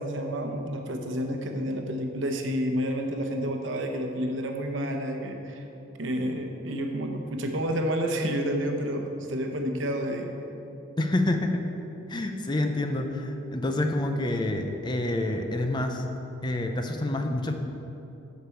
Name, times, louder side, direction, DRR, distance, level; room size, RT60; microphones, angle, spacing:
voice 1, 0.0-5.6 6.0-10.3, equal, 65° right, 3 dB, 0.9 m, -30 dB
voice 2, 11.0-11.6 12.1-16.0 16.4-17.5, left 1 dB, 20° left, 5 dB, 0.5 m, -27 dB
13.5 x 5.2 x 4.5 m, 2.9 s
head